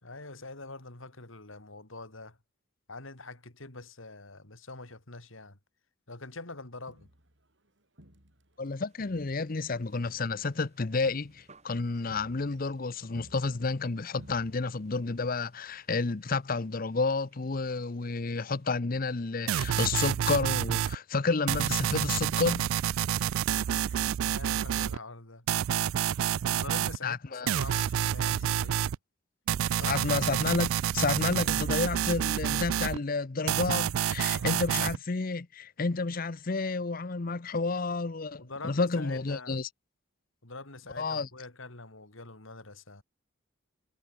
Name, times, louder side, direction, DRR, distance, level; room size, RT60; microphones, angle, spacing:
voice 1, 0.0-2.4 2.9-5.6 6.1-7.1 23.3-25.5 26.4-28.9 29.7-30.1 34.3-34.7 38.4-39.6 40.4-43.0, left 3 dB, 75° left, 3.5 m, -45 dB
Crowd, 6.9-8.7 9.0-13.9 14.2-14.9 15.2-15.3, equal, 60° right, 7.5 m, -56 dB
voice 2, 8.6-22.7 27.0-27.5 29.9-39.7 41.0-41.3, left 3 dB, 45° left, 0.7 m, -30 dB
sound 1, 8.8-18.7, right 3 dB, 35° right, 6.2 m, -66 dB
sound 2, 19.5-21.0 21.5-25.0 25.5-27.0 27.5-29.0 29.5-33.0 33.5-35.0, right 10 dB, 85° right, 0.3 m, -28 dB
head